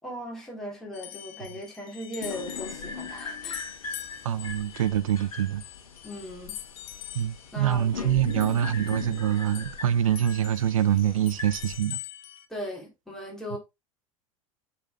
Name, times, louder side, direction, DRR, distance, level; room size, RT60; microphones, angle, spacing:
voice 1, 0.0-3.7 6.0-6.6 7.5-8.3 12.5-13.6, equal, 5° left, 3.0 m, -38 dB
sound 1, 0.9-9.9 10.2-12.5, left 13 dB, 50° left, 0.8 m, -44 dB
sound 2, 2.2-11.8, left 5 dB, 80° left, 1.3 m, -40 dB
voice 2, 4.2-5.6 7.1-12.0 13.5-13.6, right 10 dB, 70° right, 0.5 m, -25 dB
7.3 x 4.2 x 3.6 m
figure-of-eight pair, 75°, 18 cm